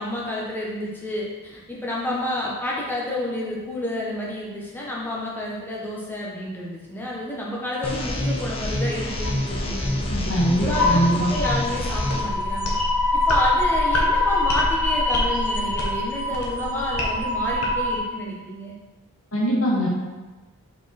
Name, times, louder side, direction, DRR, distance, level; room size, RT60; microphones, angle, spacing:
voice 1, 0.0-10.0 10.5-12.7 13.1-18.7, left 1 dB, 10° left, -5 dB, 1.3 m, -30 dB
sound 1, 7.8-12.2, left 1 dB, 25° left, 0.8 m, -27 dB
sound 2, 9.1-18.0, left 2 dB, 80° left, 1.3 m, -24 dB
voice 2, 10.0-11.3 19.3-19.9, equal, 65° left, -7 dB, 1.9 m, -22 dB
5.2 x 4.9 x 4.4 m, 1.2 s
head